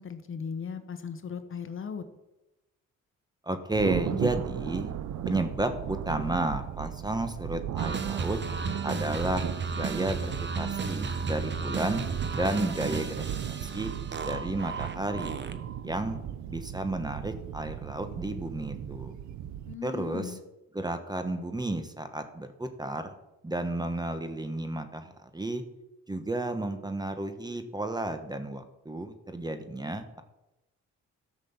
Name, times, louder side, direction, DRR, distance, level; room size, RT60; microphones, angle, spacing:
voice 1, 0.0-2.0 19.6-20.4, left 6 dB, 45° left, 9 dB, 1.3 m, -37 dB
voice 2, 3.4-4.9 5.2-8.4 8.8-12.0 12.3-13.9 14.2-15.4 15.8-16.2 16.5-19.2 19.8-20.4 20.7-23.1 23.4-25.6 26.1-30.2, right 1 dB, 15° right, 9 dB, 1.2 m, -32 dB
Thunder, 3.7-19.7, right 10 dB, 70° right, 0.7 m, -37 dB
sound 1, 7.8-15.8, right 5 dB, 35° right, 1.1 m, -34 dB
12.5 x 6.2 x 7.1 m, 0.97 s
cardioid pair, 90°, 30 cm